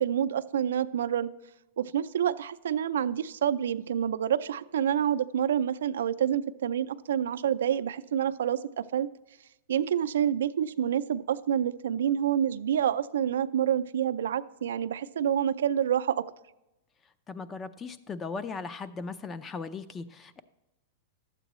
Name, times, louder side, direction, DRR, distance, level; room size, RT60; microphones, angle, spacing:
voice 1, 0.0-1.3 1.8-9.1 9.7-16.3, right 9 dB, 85° right, 12 dB, 0.4 m, -28 dB
voice 2, 17.3-20.4, left 4 dB, 20° left, 12 dB, 0.5 m, -38 dB
12.0 x 8.2 x 3.0 m, 0.93 s
hypercardioid pair, 135°, 0 cm